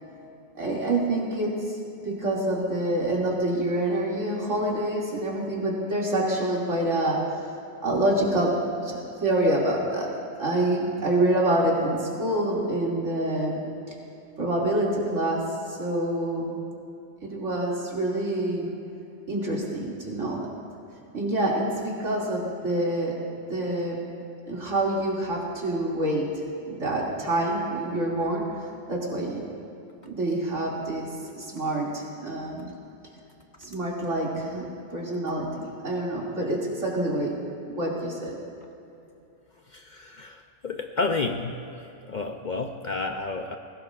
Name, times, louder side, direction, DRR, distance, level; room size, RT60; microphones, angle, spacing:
voice 1, 0.6-1.8 2.0-7.3 7.8-8.5 8.8-10.1 10.4-13.6 14.4-16.6 17.2-18.7 19.3-20.4 21.1-23.1 23.5-24.0 24.5-26.3 26.7-28.4 28.9-29.4 30.0-32.7 33.6-34.6 34.9-37.3 37.7-38.4, right 1 dB, 75° right, -5 dB, 2.9 m, -26 dB
voice 2, 39.7-41.6 42.0-43.6, left 3 dB, 50° left, 4 dB, 0.7 m, -30 dB
20.0 x 17.5 x 2.5 m, 2.8 s
omnidirectional pair, 1.3 m